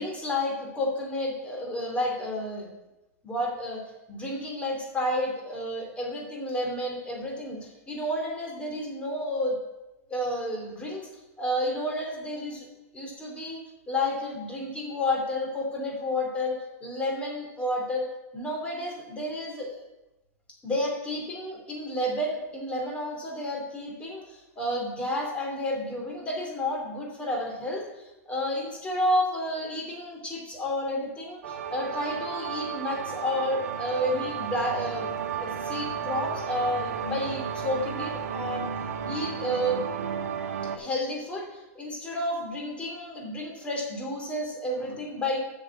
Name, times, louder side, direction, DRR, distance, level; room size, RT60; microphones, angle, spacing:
voice 1, 0.0-2.7 3.2-3.8 4.1-9.6 10.1-11.1 11.4-12.7 12.9-13.6 13.9-18.1 18.3-19.8 20.6-35.1 35.4-38.7 39.1-39.8 40.7-45.4, left 1 dB, 15° left, -1 dB, 3.0 m, -31 dB
sound 1, 31.4-40.8, right 7 dB, 70° right, 1.2 m, -33 dB
8.7 x 6.3 x 7.3 m, 0.99 s
hypercardioid pair, 140°, 9 cm